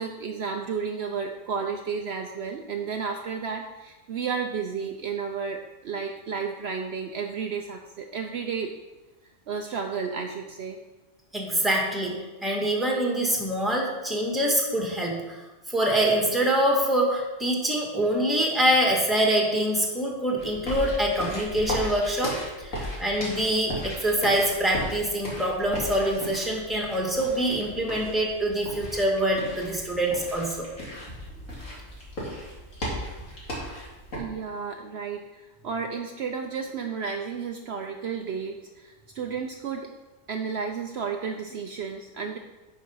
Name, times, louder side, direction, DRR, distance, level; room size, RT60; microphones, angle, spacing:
voice 1, 0.0-8.7 9.5-10.8 34.1-39.9 40.3-42.4, right 6 dB, 60° right, 3 dB, 0.8 m, -32 dB
voice 2, 11.3-15.4 15.7-30.7, right 1 dB, ahead, -1 dB, 1.5 m, -25 dB
sound 1, 20.4-34.2, equal, 80° left, 2.8 m, -36 dB
9.8 x 4.6 x 5.6 m, 1.1 s
omnidirectional pair, 1.3 m